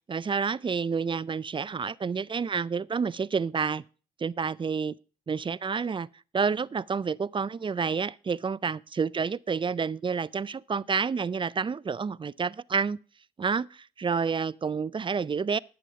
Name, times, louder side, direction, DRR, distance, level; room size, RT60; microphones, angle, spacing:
voice 1, 0.1-3.8 4.2-5.0 5.3-6.1 6.3-13.0 13.4-15.6, right 5 dB, 30° right, 0.4 m, -29 dB
11.5 x 7.1 x 5.0 m
supercardioid pair, 50°, 18 cm